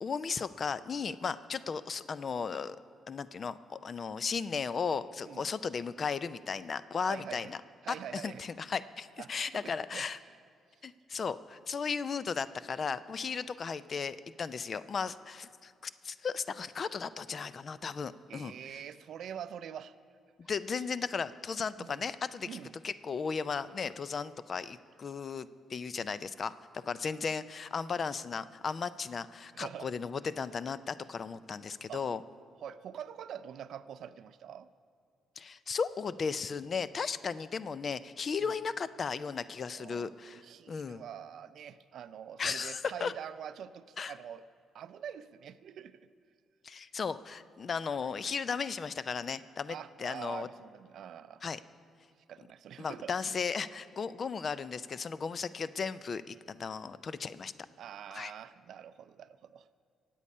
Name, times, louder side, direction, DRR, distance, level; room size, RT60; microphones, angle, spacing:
voice 1, 0.0-2.8 3.1-7.6 8.1-10.2 10.8-18.8 20.4-22.5 22.8-32.2 35.4-41.0 42.4-43.1 44.0-44.1 46.6-50.5 51.4-51.6 52.8-57.5 58.1-58.3, left 5 dB, 30° left, 15 dB, 0.4 m, -36 dB
voice 2, 7.1-7.5 7.8-8.4 9.2-10.4 18.3-19.9 21.8-22.1 22.4-22.7 29.5-29.9 31.9-32.0 32.6-34.7 38.4-38.5 39.7-44.4 44.7-46.0 49.7-51.4 52.3-53.4 57.8-59.7, right 9 dB, 55° right, 13 dB, 0.5 m, -45 dB
23.0 x 8.6 x 5.4 m, 2.3 s
cardioid pair, 180°, 0 cm